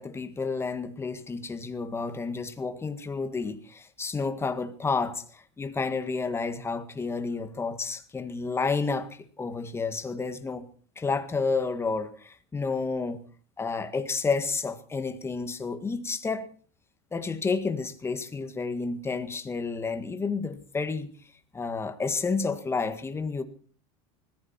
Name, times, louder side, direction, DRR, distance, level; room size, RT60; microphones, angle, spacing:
voice 1, 0.0-10.7 10.9-13.2 13.6-16.5 17.1-21.1 21.5-23.4, left 4 dB, 15° left, 1.8 m, -30 dB
20.0 x 15.0 x 4.5 m
supercardioid pair, 130°, 16 cm